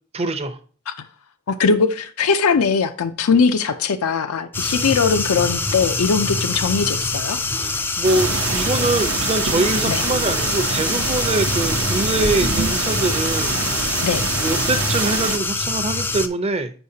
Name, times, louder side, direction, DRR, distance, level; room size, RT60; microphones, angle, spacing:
voice 1, 0.1-0.6 7.5-13.6 14.4-16.7, right 2 dB, 30° right, 10 dB, 0.6 m, -23 dB
voice 2, 1.5-7.4 9.9-10.0 14.0-14.3, left 5 dB, 85° left, 8 dB, 0.5 m, -20 dB
sound 1, 4.5-16.3, left 3 dB, 10° left, 0.3 m, -24 dB
sound 2, 8.0-15.4, right 5 dB, 70° right, 0.7 m, -25 dB
7.9 x 5.6 x 2.7 m, 0.41 s
head